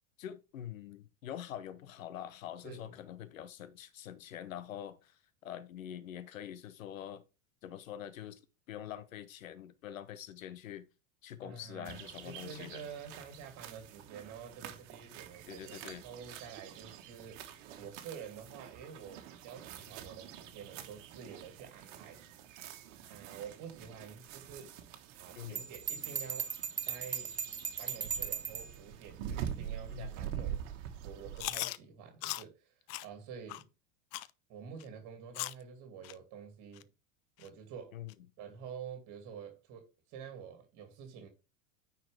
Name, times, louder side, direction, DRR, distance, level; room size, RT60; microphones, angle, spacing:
voice 1, 0.2-7.2 7.6-8.4 8.7-10.9 11.2-12.8 15.5-16.0 25.3-25.6 29.9-30.5 37.9-38.1, left 10 dB, 80° left, 1.0 m, -45 dB
voice 2, 2.6-2.9 11.4-17.4 17.8-22.2 23.1-24.8 25.2-26.5 26.8-27.3 27.8-30.6 31.0-33.7 34.5-36.9 37.4-38.0 38.4-41.3, right 7 dB, 50° right, 2.3 m, -48 dB
sound 1, 11.8-31.5, right 9 dB, 65° right, 1.5 m, -46 dB
Bell, 25.6-28.7, right 7 dB, 20° right, 1.0 m, -37 dB
Chewing mastication, 31.4-31.8 32.2-32.4 32.9-33.1 33.5-33.6 34.1-34.3 34.8-34.9 35.3-35.6 36.0-36.1 36.8-36.9 37.4-37.5 38.1-38.2, left 18 dB, 40° left, 0.5 m, -38 dB
9.4 x 4.6 x 3.4 m
hypercardioid pair, 95°, 39 cm